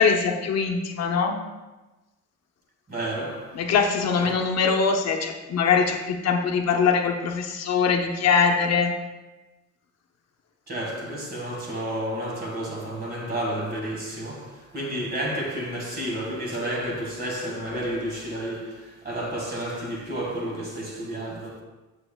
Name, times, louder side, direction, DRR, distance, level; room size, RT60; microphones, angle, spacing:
voice 1, 0.0-1.3 3.5-8.9, left 5 dB, 60° left, 0.7 m, -22 dB
voice 2, 2.9-3.6 4.2-4.3 10.7-21.6, right 1 dB, 30° right, 1.7 m, -31 dB
6.9 x 6.7 x 2.3 m
cardioid pair, 90°, 30 cm